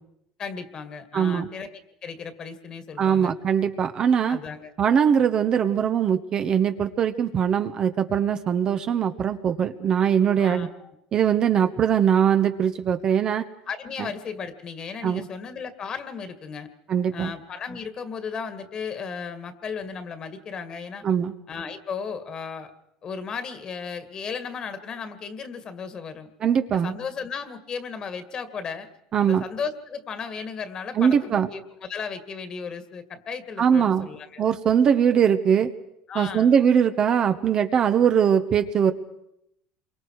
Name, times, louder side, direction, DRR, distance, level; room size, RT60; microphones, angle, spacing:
voice 1, 0.4-3.3 4.3-4.7 10.4-10.9 13.7-16.7 17.1-21.0 21.5-22.7 23.0-26.3 26.7-28.9 29.2-34.4 36.1-36.5, left 6 dB, 35° left, 10 dB, 2.2 m, -35 dB
voice 2, 1.1-1.5 3.0-4.4 4.8-10.7 11.1-13.4 14.0-14.1 15.0-15.3 16.9-17.3 21.0-21.3 26.4-26.9 29.1-29.4 31.0-31.5 33.6-34.1 34.4-35.7 36.1-38.9, right 8 dB, 40° right, 8 dB, 1.3 m, -21 dB
27.0 x 24.0 x 4.9 m, 0.79 s
supercardioid pair, 110°, 2 cm